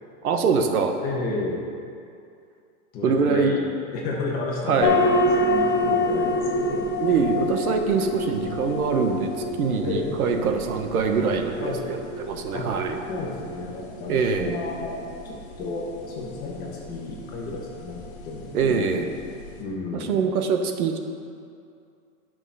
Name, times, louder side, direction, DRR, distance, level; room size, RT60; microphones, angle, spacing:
voice 1, 0.2-0.9 3.0-3.6 4.7-5.0 7.0-9.3 9.6-13.0 14.1-14.6 18.5-19.1 19.9-21.0, right 5 dB, 80° right, 5 dB, 1.3 m, -23 dB
voice 2, 1.0-1.7 2.9-3.6 3.9-6.8 9.8-10.1 11.6-11.8 12.5-12.7 13.1-14.9 15.2-18.9 19.6-20.2, left 3 dB, 20° left, -3 dB, 1.2 m, -32 dB
sound 1, 4.8-19.6, left 2 dB, 40° left, 1.4 m, -28 dB
11.0 x 6.1 x 5.5 m, 2.4 s
supercardioid pair, 170°, 43 cm